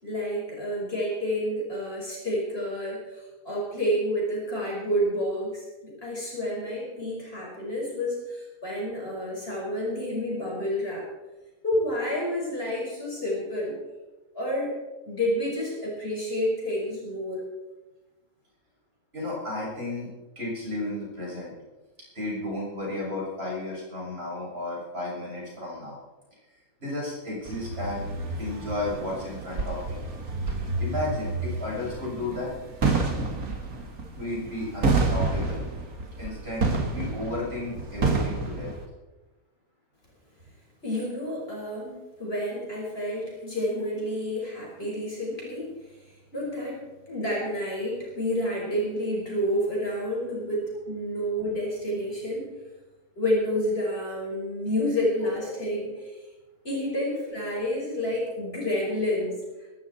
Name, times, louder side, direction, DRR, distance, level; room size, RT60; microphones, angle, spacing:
voice 1, 0.0-11.0 11.6-13.8 14.4-14.7 15.1-17.4 40.8-45.7 46.3-46.8 47.1-52.5 53.2-55.9 56.6-59.4, equal, 45° left, -3 dB, 5.8 m, -29 dB
voice 2, 19.1-21.6 22.1-26.0 26.8-28.1 28.4-30.1 30.5-30.6 30.8-32.5 34.1-35.6 36.2-38.7 55.4-55.8 57.1-57.6, left 2 dB, 45° right, -5 dB, 7.4 m, -33 dB
sound 1, 27.5-38.8, right 3 dB, 90° right, 2.6 m, -29 dB
21.5 x 13.0 x 4.4 m, 1.1 s
omnidirectional pair, 1.5 m